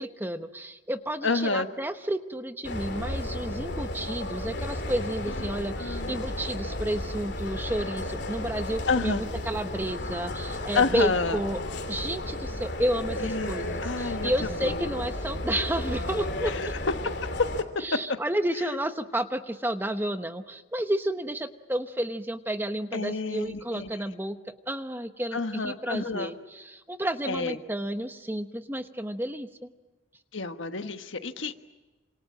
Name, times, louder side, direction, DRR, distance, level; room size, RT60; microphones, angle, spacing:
voice 1, 0.0-11.6 11.9-16.5 17.8-24.4 24.7-29.7, right 1 dB, 10° right, 8 dB, 1.0 m, -31 dB
voice 2, 1.2-1.7 5.8-6.2 8.9-9.2 10.7-11.4 13.2-13.5 13.8-14.3 14.6-14.8 16.4-16.7 22.9-23.9 25.3-26.3 27.3-27.6 30.3-31.5, left 4 dB, 80° left, 8 dB, 1.5 m, -29 dB
sound 1, 2.6-17.6, left 1 dB, 60° left, 2.9 m, -33 dB
28.0 x 26.0 x 7.5 m, 1.1 s
head